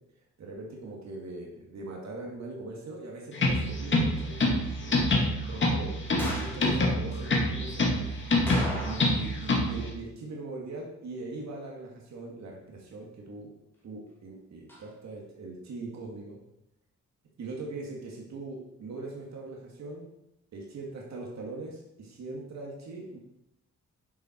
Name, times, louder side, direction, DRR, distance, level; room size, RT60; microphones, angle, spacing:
voice 1, 0.4-5.9 6.3-8.1 8.8-13.5 13.8-16.4 17.4-20.1 20.5-23.2, right 3 dB, 65° right, -1 dB, 2.3 m, -41 dB
sound 1, 3.3-9.9, left 1 dB, 40° left, 2.2 m, -26 dB
sound 2, 6.2-6.6 8.5-9.3 9.6-9.7 14.7-14.8, equal, 5° left, 2.9 m, -35 dB
11.5 x 7.1 x 4.5 m, 0.84 s
wide cardioid pair, 160°, 29 cm